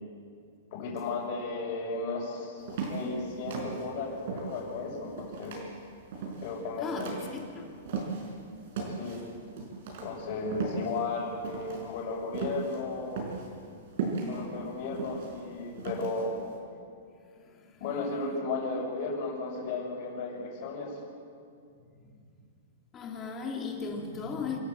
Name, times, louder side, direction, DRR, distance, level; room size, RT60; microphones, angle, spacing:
voice 1, 0.7-5.5 6.4-7.4 8.8-9.2 10.0-13.3 14.3-16.4 17.8-20.9, left 3 dB, 40° left, -2 dB, 6.7 m, -35 dB
sound 1, 2.6-8.4 8.7-16.5, right 4 dB, 55° right, 5.1 m, -37 dB
voice 2, 7.3-7.7 22.9-24.6, left 5 dB, 20° left, 1 dB, 2.7 m, -36 dB
27.0 x 13.5 x 7.9 m, 2.3 s
hypercardioid pair, 165°, 0 cm